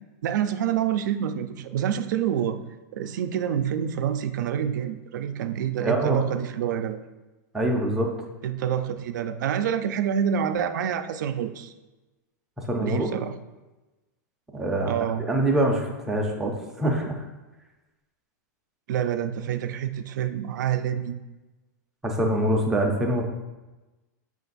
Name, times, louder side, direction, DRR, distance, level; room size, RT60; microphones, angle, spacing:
voice 1, 0.2-2.6 2.9-7.0 8.4-11.7 12.8-13.3 14.9-15.2 18.9-21.2, right 9 dB, 85° right, 9 dB, 0.4 m, -27 dB
voice 2, 5.8-6.2 7.5-8.1 12.7-13.1 14.5-14.9 15.3-17.2 22.0-23.2, right 1 dB, 5° right, 0 dB, 0.4 m, -24 dB
5.2 x 2.5 x 3.9 m, 1.1 s
supercardioid pair, 175°, 10 cm